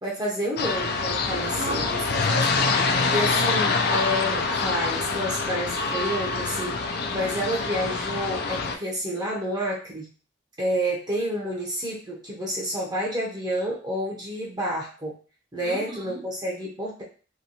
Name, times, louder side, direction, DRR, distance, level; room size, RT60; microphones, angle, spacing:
voice 1, 0.0-1.9 3.1-10.1 10.6-15.1 15.5-17.0, equal, 20° right, 0.6 m, -29 dB
sound 1, 0.6-8.8, left 4 dB, 55° left, 0.3 m, -25 dB
voice 2, 1.5-3.9 15.6-16.2, right 1 dB, 55° right, 0.7 m, -35 dB
2.8 x 2.8 x 2.7 m
head